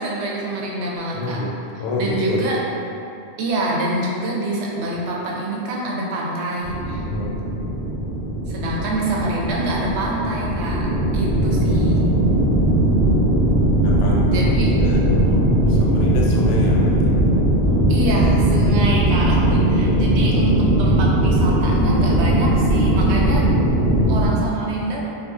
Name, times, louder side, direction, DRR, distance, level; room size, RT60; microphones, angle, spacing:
voice 1, 0.0-1.4 2.0-2.6 3.4-7.0 8.5-10.9 11.1-12.0 14.3-14.7 17.9-23.5 24.1-25.1, right 2 dB, 80° right, -3 dB, 0.9 m, -25 dB
voice 2, 1.1-1.5 1.8-2.4 7.1-7.3 11.4-11.6 13.6-17.1 19.8-20.2 23.8-24.1, left 2 dB, 70° left, -3 dB, 0.8 m, -27 dB
sound 1, 6.6-24.3, right 1 dB, 25° right, 0.9 m, -19 dB
3.6 x 2.5 x 2.4 m, 2.7 s
omnidirectional pair, 1.1 m